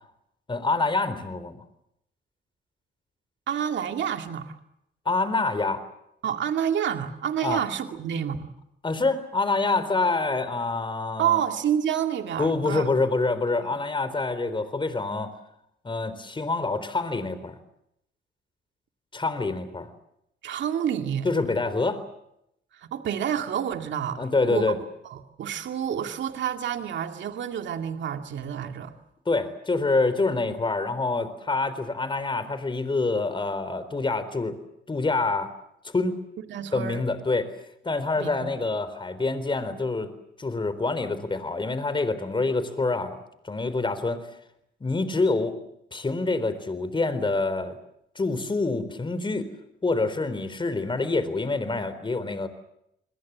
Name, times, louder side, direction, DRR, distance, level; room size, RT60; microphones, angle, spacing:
voice 1, 0.5-1.6 5.1-5.8 7.4-7.6 8.8-11.4 12.4-15.3 15.8-17.5 19.1-19.9 21.2-22.0 24.2-24.8 29.3-34.6 34.9-35.5 35.8-36.1 36.7-37.5 37.8-40.1 40.4-43.2 43.4-44.2 44.8-45.5 45.9-47.8 48.2-49.5 49.8-52.5, left 3 dB, 25° left, 12 dB, 4.0 m, -26 dB
voice 2, 3.5-4.6 6.2-8.5 11.2-12.9 13.6-13.7 20.4-21.3 22.7-24.7 25.0-28.9 36.5-37.0 38.2-38.5, right 9 dB, 65° right, 5 dB, 2.4 m, -29 dB
30.0 x 21.5 x 7.4 m, 0.79 s
cardioid pair, 90°, 20 cm